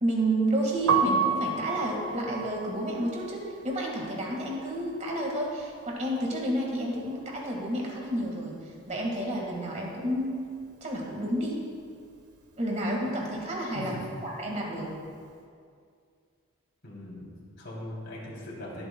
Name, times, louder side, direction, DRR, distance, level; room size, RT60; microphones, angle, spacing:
voice 1, 0.0-8.6 8.9-10.4 10.8-11.6 12.6-14.0 14.2-14.9, right 1 dB, 30° right, -1 dB, 1.7 m, -30 dB
Piano, 0.7-6.7 6.9-8.5 8.8-15.2, right 5 dB, 90° right, 1.1 m, -33 dB
voice 2, 16.8-18.9, left 1 dB, 55° left, -5 dB, 2.9 m, -40 dB
21.0 x 8.1 x 2.2 m, 2.3 s
head